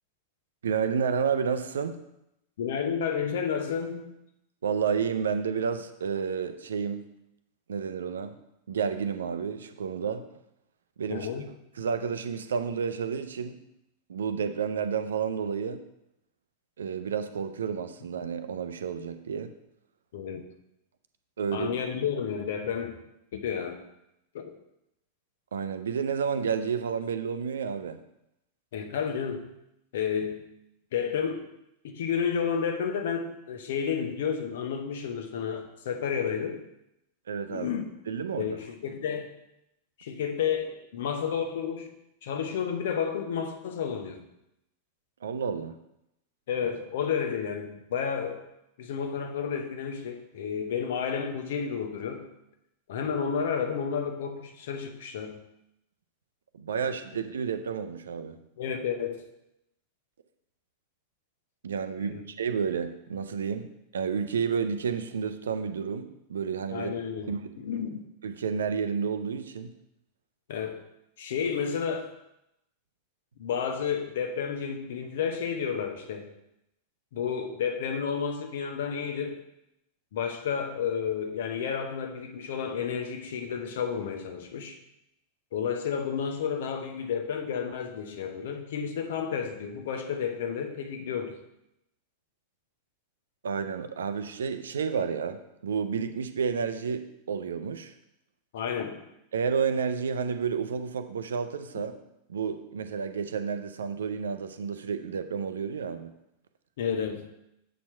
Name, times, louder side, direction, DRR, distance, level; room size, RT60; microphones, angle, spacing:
voice 1, 0.6-2.0 4.6-7.1 7.7-8.4 8.7-10.3 11.0-13.6 14.1-15.9 16.8-19.5 21.4-21.7 25.5-28.0 37.3-37.7 38.1-38.6 45.2-45.8 56.5-58.4 61.6-66.9 67.3-67.5 68.2-69.7 93.4-97.9 99.3-102.0 102.3-106.1, right 6 dB, 65° right, 9 dB, 0.5 m, -31 dB
voice 2, 2.6-4.1 11.1-11.5 20.1-20.4 21.5-22.9 23.3-23.8 24.3-24.6 28.7-29.5 29.9-30.4 30.9-31.5 31.8-36.6 37.5-37.9 38.4-39.3 40.0-41.9 42.2-44.2 46.5-48.5 48.8-52.3 52.9-55.4 58.6-59.2 62.0-62.2 66.7-68.0 70.5-70.8 71.2-72.1 73.4-76.3 77.1-79.4 80.1-84.8 85.5-91.4 98.5-99.0 106.8-107.3, left 7 dB, 55° left, 6 dB, 0.8 m, -31 dB
7.3 x 4.4 x 4.4 m, 0.84 s
figure-of-eight pair, 90°, 0 cm